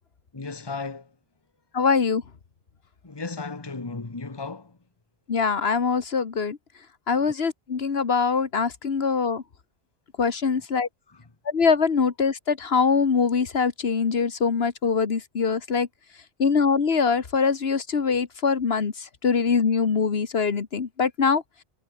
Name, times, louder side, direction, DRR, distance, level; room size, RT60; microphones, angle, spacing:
voice 1, 0.3-1.1 3.0-4.8 11.1-11.2, left 4 dB, 25° left, 1.4 m, -35 dB
voice 2, 1.7-2.2 5.3-6.6 7.1-9.4 10.2-10.9 11.5-15.9 16.4-21.4, left 5 dB, 70° left, 1.6 m, -23 dB
omnidirectional pair, 1.1 m